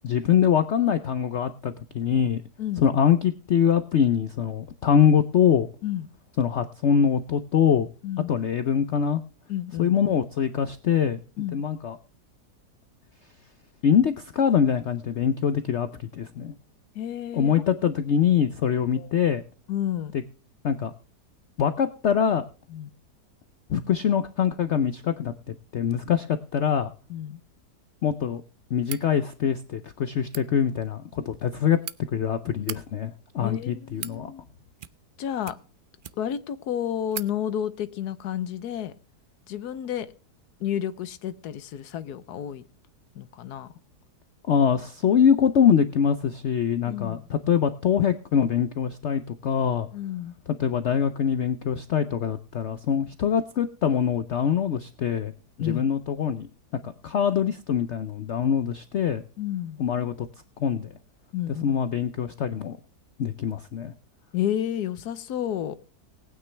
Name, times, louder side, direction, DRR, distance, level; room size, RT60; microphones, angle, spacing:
voice 1, 0.0-2.4 2.8-5.7 6.4-7.9 8.3-9.2 9.8-11.2 11.5-12.0 13.8-16.5 17.3-19.4 20.6-20.9 21.6-22.4 23.7-26.9 28.0-28.4 28.7-31.8 32.1-34.3 44.5-49.9 50.6-55.3 55.6-56.5 56.8-59.2 59.8-60.3 60.6-60.9 61.6-62.8 63.2-63.9, left 8 dB, 60° left, 0.8 m, -24 dB
voice 2, 2.6-2.9 5.8-6.1 8.0-8.3 9.5-9.9 11.4-11.6 16.9-17.5 19.0-19.1 19.7-20.1 22.7-22.9 27.1-27.4 33.4-34.4 35.2-35.6 36.2-38.9 39.5-40.1 40.6-42.6 43.1-43.7 46.9-47.2 49.9-50.3 55.6-55.9 59.4-59.8 61.3-61.8 64.3-65.8, left 10 dB, 75° left, 1.4 m, -31 dB
sound 1, 28.8-29.1 30.2-30.4 31.4-32.0 32.5-32.8 33.6-34.2 34.7-35.1 35.4-36.4 36.7-36.8 37.1-37.3, right 8 dB, 85° right, 0.4 m, -38 dB
19.5 x 9.1 x 3.3 m
omnidirectional pair, 1.8 m